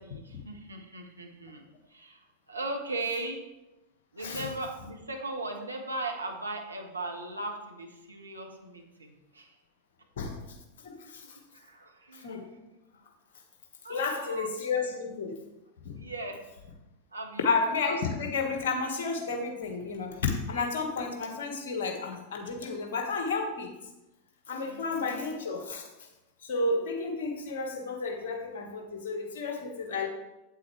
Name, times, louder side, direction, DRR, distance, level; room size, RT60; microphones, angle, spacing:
voice 1, 0.0-3.4 4.1-9.6 11.5-12.7 13.8-14.5 16.0-16.4 17.1-17.5 24.6-25.2, right 2 dB, 80° right, 2 dB, 1.1 m, -38 dB
voice 2, 10.2-10.6 10.8-11.4 12.1-12.4 13.9-15.4 15.8-16.0 17.4-23.7 24.5-25.9 26.4-30.1, left 4 dB, 55° left, 3 dB, 1.5 m, -32 dB
8.5 x 8.1 x 3.2 m, 0.98 s
figure-of-eight pair, 90°, 0 cm